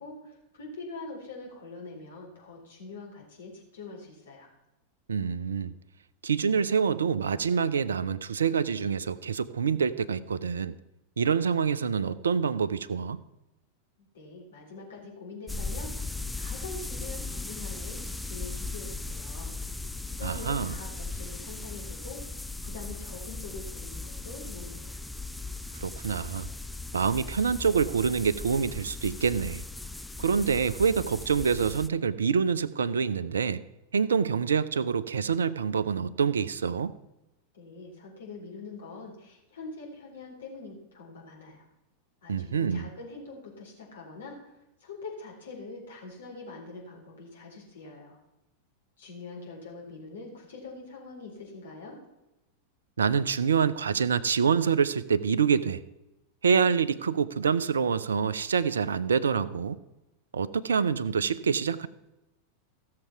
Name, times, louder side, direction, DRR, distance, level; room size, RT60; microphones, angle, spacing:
voice 1, 0.0-4.5 14.1-15.9 16.4-19.5 20.2-25.0 37.5-41.6 42.2-44.5 44.8-48.2 49.0-52.0, left 3 dB, 65° left, -1 dB, 4.2 m, -44 dB
voice 2, 5.1-5.7 6.2-10.7 11.2-13.2 20.2-20.8 25.7-26.5 26.9-29.6 30.2-33.6 33.9-36.9 42.3-42.9 53.0-55.8 56.4-59.8 60.3-61.9, right 6 dB, 70° right, 16 dB, 0.5 m, -26 dB
sound 1, 15.5-31.9, left 3 dB, 5° left, 0.4 m, -38 dB
15.5 x 6.7 x 5.8 m, 0.95 s
figure-of-eight pair, 90°, 0 cm